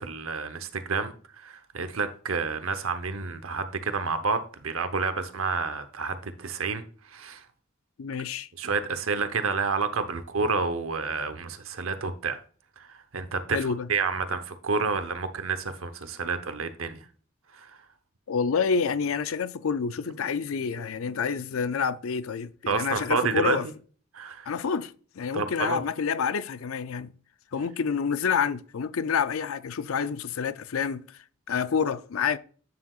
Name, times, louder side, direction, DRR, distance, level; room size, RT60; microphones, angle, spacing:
voice 1, 0.0-7.4 8.6-12.4 12.8-17.1 17.5-17.8 20.7-20.9 22.7-23.6 24.1-24.5 25.3-25.8, right 4 dB, 90° right, 0.9 m, -29 dB
voice 2, 8.0-8.5 13.5-13.9 18.3-23.7 24.5-27.1 27.5-31.2 31.5-32.4, left 6 dB, 90° left, 0.5 m, -28 dB
8.6 x 7.5 x 2.4 m
head